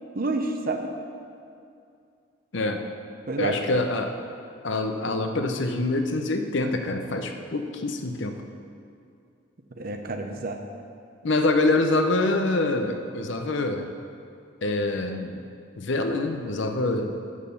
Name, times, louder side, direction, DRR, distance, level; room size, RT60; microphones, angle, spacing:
voice 1, 0.1-0.9 3.3-3.8 9.8-10.6, right 2 dB, 45° right, 5 dB, 0.7 m, -29 dB
voice 2, 2.5-2.8 3.4-4.2 4.6-8.4 11.2-13.9 14.6-15.4 15.8-17.2, left 2 dB, 60° left, 6 dB, 0.7 m, -25 dB
7.4 x 6.4 x 6.8 m, 2.5 s
head